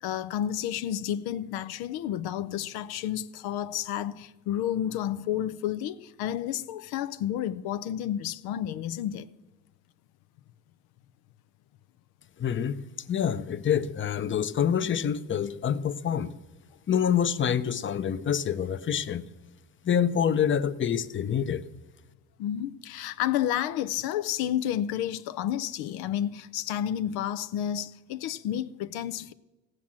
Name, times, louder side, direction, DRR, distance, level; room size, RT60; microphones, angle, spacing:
voice 1, 0.0-9.3 22.4-29.3, left 11 dB, 85° left, 0.6 m, -31 dB
voice 2, 12.4-12.8 13.1-16.3 16.9-19.3 19.8-21.6, left 8 dB, 30° left, 0.7 m, -26 dB
16.5 x 7.4 x 7.4 m
cardioid pair, 100°, 37 cm